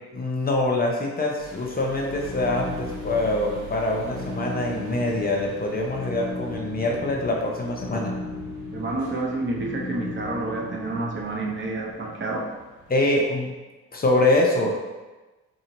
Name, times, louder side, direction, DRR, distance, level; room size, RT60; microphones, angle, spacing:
voice 1, 0.1-8.1 12.9-13.5 13.9-14.8, left 2 dB, 30° left, -1 dB, 0.6 m, -24 dB
sound 1, 1.4-13.2, right 2 dB, 70° right, 1.0 m, -44 dB
sound 2, 2.0-11.2, left 3 dB, 75° left, 0.7 m, -36 dB
voice 2, 8.7-12.4, right 2 dB, 40° right, -1 dB, 0.7 m, -29 dB
4.2 x 2.7 x 2.9 m, 1.2 s
cardioid pair, 90°, 30 cm